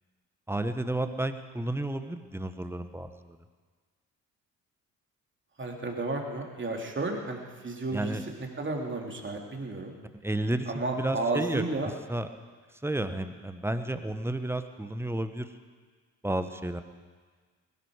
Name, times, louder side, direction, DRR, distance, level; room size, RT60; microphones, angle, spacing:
voice 1, 0.5-3.4 7.9-8.2 10.2-11.6 12.1-12.3 12.8-15.5 16.2-16.8, right 1 dB, 5° right, 9 dB, 1.2 m, -32 dB
voice 2, 5.6-7.4 7.6-9.9 10.7-11.9, right 2 dB, 30° right, 1 dB, 3.1 m, -32 dB
21.0 x 12.5 x 5.0 m, 1.5 s
hypercardioid pair, 45°, 41 cm